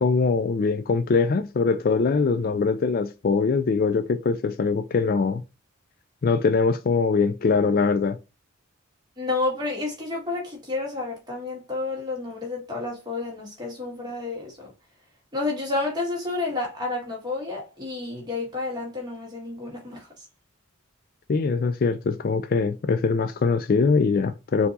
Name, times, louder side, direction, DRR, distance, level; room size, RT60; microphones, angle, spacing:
voice 1, 0.0-5.4 6.2-8.2 21.3-24.7, left 4 dB, 40° left, 0.3 m, -22 dB
voice 2, 9.2-14.7 15.3-20.1, left 3 dB, 20° right, 1.8 m, -30 dB
4.4 x 2.7 x 4.0 m
head